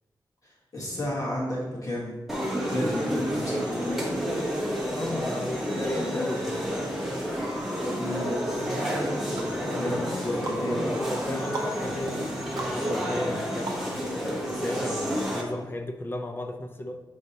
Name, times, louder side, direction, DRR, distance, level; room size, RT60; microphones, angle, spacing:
voice 1, 0.4-2.2 2.7-4.3 7.9-8.3 9.5-11.0, left 1 dB, 45° left, -5 dB, 1.1 m, -32 dB
sound 1, 2.3-15.4, equal, 5° right, 1.1 m, -30 dB
voice 2, 2.7-3.2 4.9-6.7 9.7-17.0, left 1 dB, 25° left, 5 dB, 0.5 m, -35 dB
sound 2, 8.8-14.2 14.7-14.8, right 2 dB, 60° right, 0.9 m, -40 dB
7.7 x 4.8 x 2.8 m, 1.2 s
wide cardioid pair, 160°, 8 cm